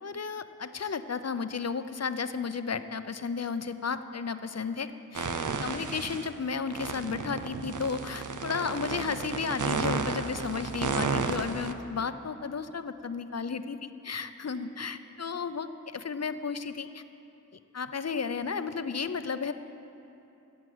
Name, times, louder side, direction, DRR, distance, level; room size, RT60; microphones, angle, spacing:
voice 1, 0.0-5.3 5.6-17.0 17.7-19.5, left 5 dB, 55° left, 11 dB, 0.6 m, -33 dB
sound 1, 5.1-6.3 6.7-11.7, right 4 dB, 80° right, 0.7 m, -32 dB
16.0 x 8.3 x 7.9 m, 3.0 s
wide cardioid pair, 55°, 31 cm